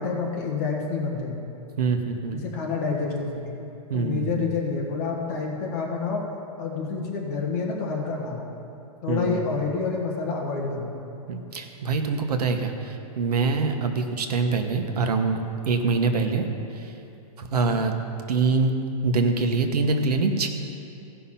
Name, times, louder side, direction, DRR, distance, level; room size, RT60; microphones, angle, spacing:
voice 1, 0.0-1.4 2.3-3.5 3.9-6.2 6.6-8.4 9.0-10.9 17.5-17.8, left 4 dB, 25° left, -2 dB, 1.4 m, -28 dB
voice 2, 1.8-2.4 3.9-4.4 9.1-9.5 11.3-15.4 15.7-16.5 17.4-17.9 18.3-18.7 19.0-20.5, right 4 dB, 85° right, 5 dB, 1.3 m, -24 dB
16.0 x 5.7 x 5.7 m, 2.7 s
hypercardioid pair, 180°, 20 cm